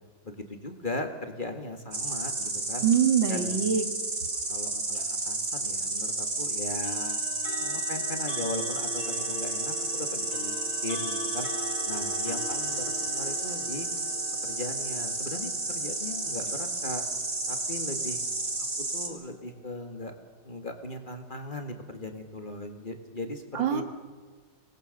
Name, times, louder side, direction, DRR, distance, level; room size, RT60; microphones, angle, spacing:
voice 1, 0.2-2.9 3.3-3.8 4.5-7.2 7.6-10.5 10.8-11.5 11.9-13.9 14.4-17.0 17.5-18.2 18.9-20.1 20.4-23.8, left 2 dB, 25° left, 5 dB, 2.0 m, -38 dB
Insect, 1.9-19.1, right 2 dB, 35° right, 2.7 m, -32 dB
voice 2, 2.8-3.8 23.5-23.8, right 8 dB, 90° right, 7 dB, 2.6 m, -24 dB
sound 1, 4.9-5.2 6.8-19.7, left 1 dB, 55° left, 3.3 m, -42 dB
25.0 x 19.5 x 6.6 m, 1.4 s
omnidirectional pair, 2.0 m